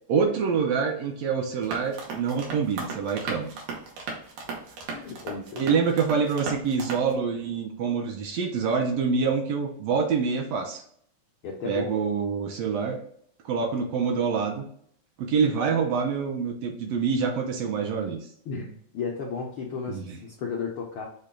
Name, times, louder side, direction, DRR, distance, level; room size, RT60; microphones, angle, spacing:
voice 1, 0.1-3.5 5.6-10.8 11.7-13.0 13.4-14.6 15.2-18.3 19.9-20.2, right 5 dB, 75° right, 3 dB, 1.6 m, -26 dB
sound 1, 1.6-7.1, right 4 dB, 90° right, 2.5 m, -37 dB
voice 2, 4.9-5.7 11.4-12.0 18.5-21.0, left 5 dB, 80° left, -2 dB, 1.1 m, -34 dB
6.5 x 2.3 x 3.6 m, 0.63 s
omnidirectional pair, 3.4 m